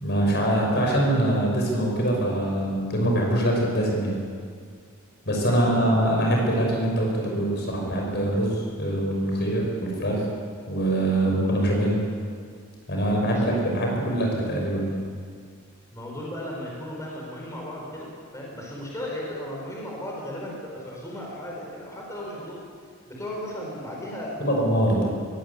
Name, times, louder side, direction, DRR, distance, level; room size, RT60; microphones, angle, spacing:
voice 1, 0.0-4.2 5.2-10.3 10.7-12.0 12.9-15.0 24.4-25.1, right 1 dB, 50° left, 0 dB, 6.3 m, -23 dB
voice 2, 5.5-6.0 13.2-13.5 15.9-18.1 18.3-22.6 23.1-24.4, left 1 dB, 15° left, -3 dB, 5.2 m, -35 dB
22.0 x 18.0 x 8.5 m, 2.1 s
head